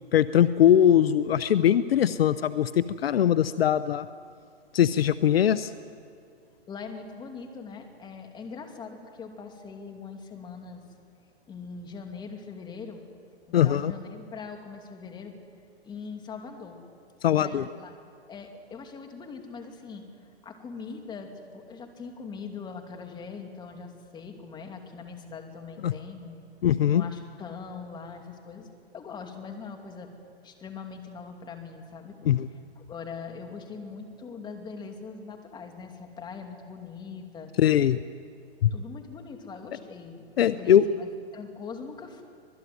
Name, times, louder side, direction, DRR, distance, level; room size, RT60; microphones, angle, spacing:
voice 1, 0.1-4.1 4.7-5.7 13.5-13.9 17.2-17.6 25.8-25.9 26.6-27.0 32.2-32.5 37.6-38.0 38.6-38.7 40.4-40.8, left 10 dB, 65° left, 14 dB, 0.8 m, -21 dB
voice 2, 6.7-10.8 11.5-13.0 13.6-15.4 15.8-16.8 17.3-17.9 18.3-20.0 20.4-26.4 26.9-28.7 28.9-30.1 30.4-32.1 32.8-37.5 38.7-42.2, left 5 dB, 15° left, 4 dB, 2.7 m, -41 dB
26.0 x 19.5 x 9.5 m, 2.3 s
hypercardioid pair, 145°, 32 cm